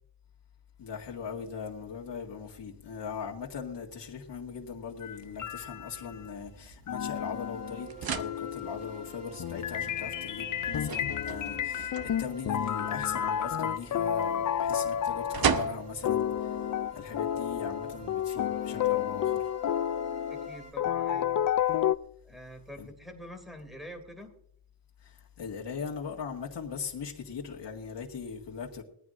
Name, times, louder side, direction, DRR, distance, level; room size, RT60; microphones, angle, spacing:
voice 1, 0.8-19.5 22.8-22.9 25.0-28.8, left 6 dB, 80° left, 1.9 m, -40 dB
sound 1, 5.0-6.3 6.9-22.0, left 10 dB, 50° left, 0.4 m, -31 dB
sound 2, 5.2-18.1, right 7 dB, 60° right, 0.8 m, -39 dB
sound 3, 7.1-20.7, right 5 dB, 20° right, 2.8 m, -50 dB
voice 2, 20.3-21.4 22.2-24.3, equal, ahead, 2.7 m, -46 dB
20.5 x 14.5 x 2.5 m
wide cardioid pair, 170°, 42 cm